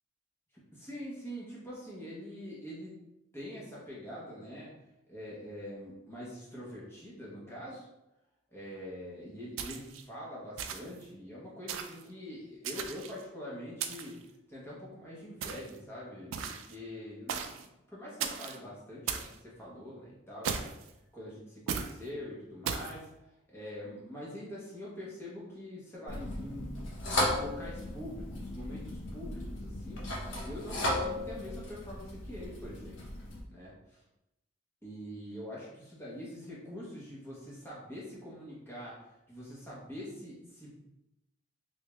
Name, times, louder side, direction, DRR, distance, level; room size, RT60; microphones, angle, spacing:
voice 1, 0.5-3.0 3.3-4.7 5.1-7.8 8.5-14.2 14.5-20.7 21.1-23.1 23.5-26.8 27.2-30.1 30.4-33.0 33.5-34.0 34.8-40.8, equal, 10° left, -7 dB, 1.0 m, -44 dB
sound 1, 9.6-10.0 10.6-11.0 11.7-12.0 12.6-13.2 13.8-14.2 15.4-15.8 16.3-16.7 17.3-17.6 18.2-18.6 19.1-19.3 20.4-20.9 21.7-21.9 22.6-22.9, right 7 dB, 75° right, 0.3 m, -36 dB
sound 2, 26.1-33.4, left 1 dB, 65° left, 0.7 m, -36 dB
3.4 x 2.7 x 3.1 m, 0.90 s
head